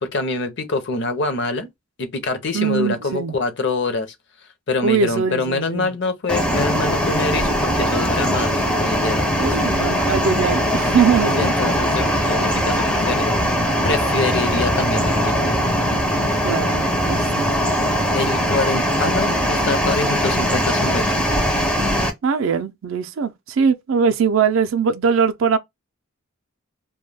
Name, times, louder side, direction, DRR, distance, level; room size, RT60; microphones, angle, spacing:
voice 1, 0.0-1.7 2.0-4.1 4.7-9.7 11.4-13.4 13.8-15.5 18.1-21.1, left 3 dB, 50° left, 0.6 m, -25 dB
voice 2, 2.5-3.4 4.8-5.9 9.4-11.4 16.4-17.5 22.2-25.6, right 6 dB, 65° right, 0.4 m, -21 dB
sound 1, 6.3-22.1, equal, 5° left, 0.4 m, -20 dB
2.2 x 2.1 x 3.2 m
head